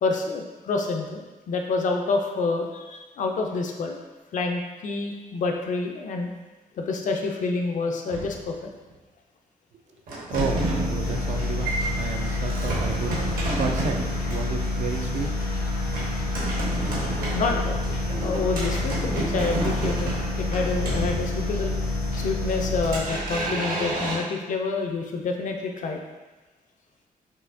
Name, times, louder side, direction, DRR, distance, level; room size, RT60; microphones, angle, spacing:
voice 1, 0.0-4.0 4.3-6.3 6.7-8.6 17.3-17.7 18.2-20.1 20.4-21.7 22.2-26.0, left 3 dB, 60° left, 2 dB, 0.5 m, -28 dB
sound 1, 8.1-8.9 10.1-14.5 15.9-21.7 22.2-24.1, right 2 dB, 70° right, 1.2 m, -31 dB
sound 2, 10.3-23.3, left 2 dB, 85° left, 0.9 m, -28 dB
voice 2, 10.3-13.1 13.5-15.3, right 5 dB, 55° right, 5 dB, 0.4 m, -32 dB
5.5 x 2.8 x 2.6 m, 1.2 s
wide cardioid pair, 165°, 15 cm